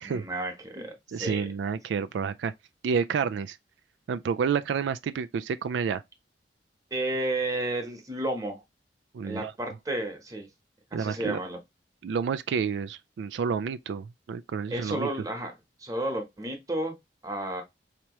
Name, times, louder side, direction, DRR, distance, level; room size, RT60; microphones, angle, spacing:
voice 1, 0.0-1.5 6.9-8.6 9.2-10.5 10.9-11.6 14.7-15.5 15.8-17.0 17.2-17.6, right 1 dB, 20° right, 1.0 m, -32 dB
voice 2, 1.1-2.5 2.8-3.6 4.1-6.0 9.1-9.5 10.9-11.4 12.0-15.1, right 6 dB, 90° right, 0.3 m, -29 dB
4.5 x 2.9 x 3.0 m
head